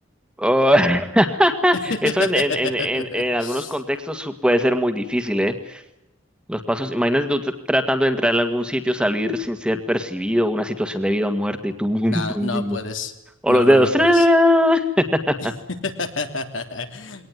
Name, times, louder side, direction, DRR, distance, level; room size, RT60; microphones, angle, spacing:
voice 1, 0.4-5.8 6.5-12.8 13.4-15.5, equal, 5° right, 7 dB, 1.8 m, -20 dB
voice 2, 2.0-3.7 12.0-13.1 13.5-14.2 15.8-17.3, left 3 dB, 75° left, 6 dB, 3.1 m, -29 dB
22.5 x 19.0 x 9.7 m, 0.90 s
head